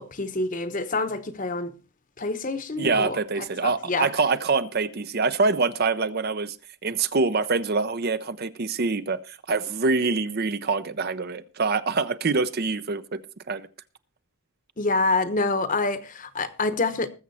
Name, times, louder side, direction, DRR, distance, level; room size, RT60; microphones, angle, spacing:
voice 1, 0.0-1.7 2.2-4.1 14.8-17.1, left 3 dB, 35° left, 1.0 m, -27 dB
voice 2, 2.8-6.6 6.8-13.2 13.5-13.7, right 4 dB, 45° right, 0.7 m, -25 dB
20.0 x 7.4 x 4.2 m
head